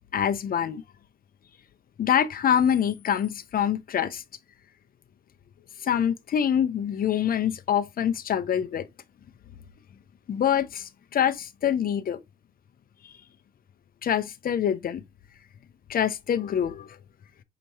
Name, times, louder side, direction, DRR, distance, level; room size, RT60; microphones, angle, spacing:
voice 1, 0.1-0.8 2.0-4.2 5.8-8.9 10.3-12.2 13.0-13.1 14.0-15.0 15.9-17.0, left 9 dB, 45° left, 0.6 m, -25 dB
4.5 x 2.9 x 2.7 m
cardioid pair, 90°, 20 cm